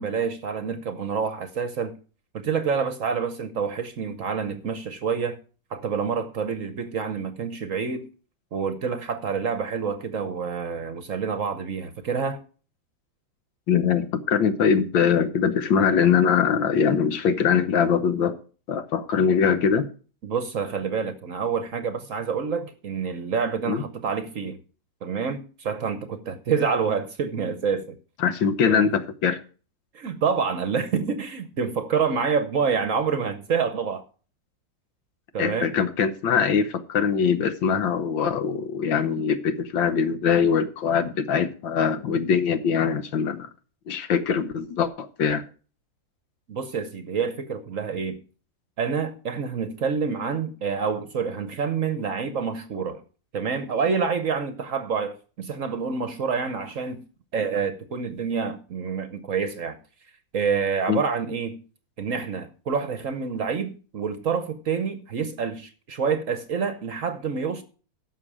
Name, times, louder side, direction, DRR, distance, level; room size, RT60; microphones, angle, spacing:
voice 1, 0.0-2.0 2.3-5.4 5.7-8.1 8.5-12.4 20.2-24.6 25.0-28.0 28.6-28.8 29.9-34.0 35.3-35.7 46.5-48.2 48.8-53.0 53.3-57.0 57.3-59.8 60.3-61.6 62.0-67.6, right 6 dB, 55° right, 1.0 m, -27 dB
voice 2, 13.7-18.4 18.7-19.9 23.7-23.8 28.2-29.4 35.4-43.5 43.9-45.4 60.9-61.0, left 7 dB, 80° left, 1.8 m, -22 dB
15.5 x 6.4 x 4.8 m
omnidirectional pair, 2.0 m